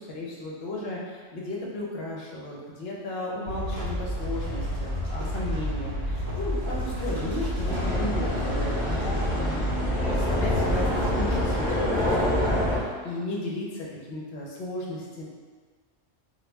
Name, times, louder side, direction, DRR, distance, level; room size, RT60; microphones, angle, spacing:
voice 1, 0.0-15.2, left 1 dB, 60° left, -4 dB, 0.8 m, -35 dB
sound 1, 3.5-11.1, equal, 35° right, 1.5 m, -30 dB
sound 2, 7.6-12.8, left 1 dB, 10° right, 0.6 m, -26 dB
3.0 x 2.4 x 3.3 m, 1.5 s
omnidirectional pair, 1.3 m